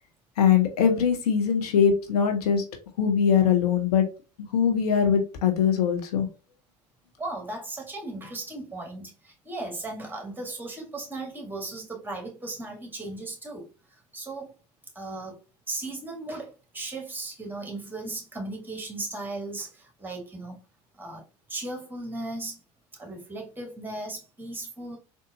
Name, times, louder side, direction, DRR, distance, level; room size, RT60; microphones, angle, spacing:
voice 1, 0.4-2.6 3.0-4.1 4.5-6.3, left 7 dB, 65° left, 0.8 m, -22 dB
voice 2, 7.2-14.5 14.9-15.4 15.7-20.6 21.0-21.2 21.5-22.6 22.9-25.0, right 2 dB, 10° right, 1.4 m, -36 dB
3.8 x 2.5 x 2.5 m
figure-of-eight pair, 70°, 21 cm